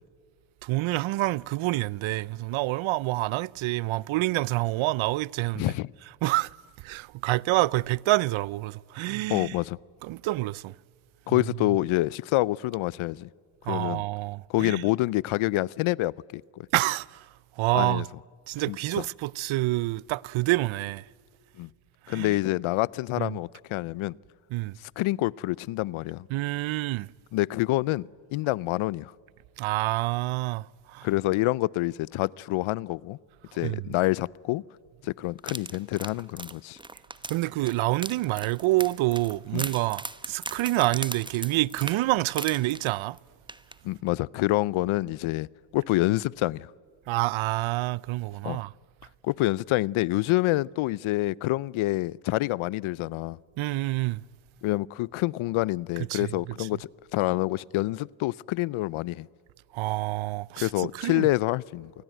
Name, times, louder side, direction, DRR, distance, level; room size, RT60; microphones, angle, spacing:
voice 1, 0.6-5.7 6.2-9.6 10.0-10.7 13.7-14.9 16.7-17.3 17.6-18.1 18.5-21.0 22.1-22.3 23.2-23.3 24.5-24.8 26.3-27.1 29.6-31.1 33.6-33.8 37.3-43.2 47.1-48.7 53.6-54.2 56.1-56.3 59.7-61.3, right 19 dB, 75° right, 0.6 m, -27 dB
voice 2, 5.6-5.9 9.3-9.8 11.3-13.3 13.7-14.0 14.5-16.7 17.7-18.1 18.7-19.0 21.6-21.7 22.1-24.2 24.8-26.3 27.3-29.1 31.0-33.2 33.5-34.6 35.0-36.8 39.5-39.7 43.8-45.5 45.7-46.7 48.4-48.6 49.2-53.4 54.6-59.3 60.6-61.9, left 18 dB, 90° left, 0.6 m, -27 dB
sound 1, 35.4-43.2 43.5-43.7 44.1-44.2, right 2 dB, 10° right, 1.0 m, -38 dB
28.0 x 20.5 x 9.1 m
cardioid pair, 95°, 47 cm